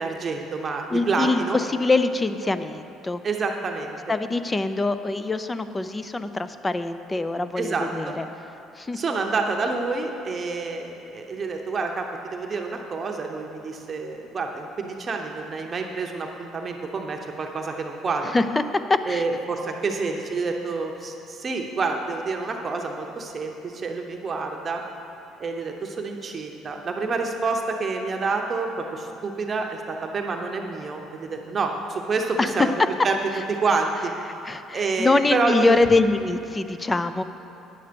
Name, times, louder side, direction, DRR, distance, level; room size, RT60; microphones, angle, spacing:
voice 1, 0.0-1.6 3.2-4.0 7.6-8.2 8.9-18.3 19.1-24.8 25.4-32.7 33.0-33.2 33.5-34.1 34.7-35.8, right 4 dB, 35° right, 2 dB, 0.8 m, -28 dB
voice 2, 0.9-3.2 4.1-8.3 8.8-9.0 18.2-18.6 18.9-19.2 32.4-32.7 34.4-37.2, left 3 dB, 20° left, 11 dB, 0.4 m, -24 dB
9.7 x 7.9 x 5.2 m, 2.9 s
cardioid pair, 105°, 0 cm